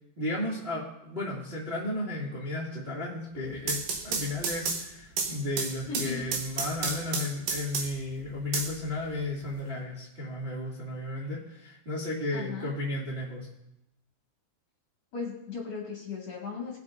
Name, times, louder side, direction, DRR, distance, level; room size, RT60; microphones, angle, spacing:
voice 1, 0.2-13.5, left 2 dB, 25° right, -6 dB, 1.6 m, -34 dB
sound 1, 3.4-8.1 8.5-9.5, right 5 dB, 65° right, 2.7 m, -32 dB
voice 2, 5.9-6.3 12.3-12.7 15.1-16.8, left 5 dB, 45° left, -4 dB, 2.7 m, -37 dB
20.5 x 8.0 x 2.6 m, 0.84 s
omnidirectional pair, 5.0 m